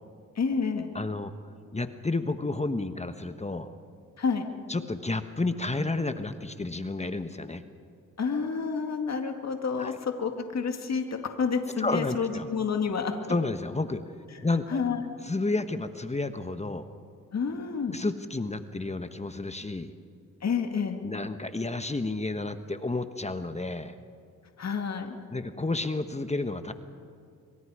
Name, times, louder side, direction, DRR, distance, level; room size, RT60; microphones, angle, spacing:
voice 1, 0.4-0.9 4.2-4.5 8.2-13.2 14.7-15.0 17.3-18.0 20.4-21.0 24.6-25.2, left 5 dB, 55° left, 5 dB, 2.1 m, -29 dB
voice 2, 0.9-1.3 1.7-3.7 4.7-7.6 9.8-10.0 11.8-12.5 13.3-14.0 14.4-14.8 15.2-16.9 17.9-19.9 21.0-23.9 25.3-26.7, left 2 dB, 20° left, 9 dB, 1.2 m, -31 dB
25.0 x 23.5 x 4.9 m, 2.3 s
cardioid pair, 60°, 32 cm